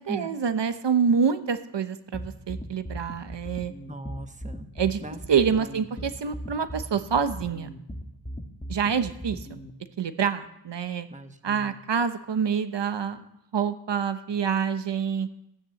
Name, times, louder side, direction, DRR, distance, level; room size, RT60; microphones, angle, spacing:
voice 1, 0.0-3.7 4.8-5.0 5.3-7.7 8.7-9.6 10.0-11.1 11.4-13.2 13.5-15.3, right 7 dB, 70° right, 10 dB, 1.0 m, -26 dB
sound 1, 2.1-9.7, equal, 15° left, 1.5 m, -38 dB
voice 2, 3.9-4.7 5.0-5.2 5.5-5.8 11.1-11.8, right 2 dB, 15° right, 7 dB, 1.1 m, -39 dB
15.5 x 10.0 x 7.7 m, 0.80 s
wide cardioid pair, 105°, 44 cm